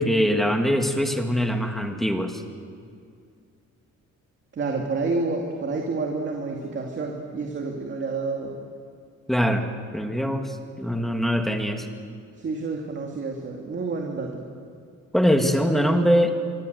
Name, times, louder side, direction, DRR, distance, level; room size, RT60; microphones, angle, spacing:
voice 1, 0.0-2.4 9.3-9.7 9.9-11.9 15.1-16.4, equal, ahead, 4 dB, 1.9 m, -22 dB
voice 2, 4.5-8.6 11.7-11.8 12.4-14.4, right 3 dB, 40° right, 1 dB, 2.4 m, -29 dB
25.5 x 24.0 x 8.1 m, 2.3 s
wide cardioid pair, 175°, 30 cm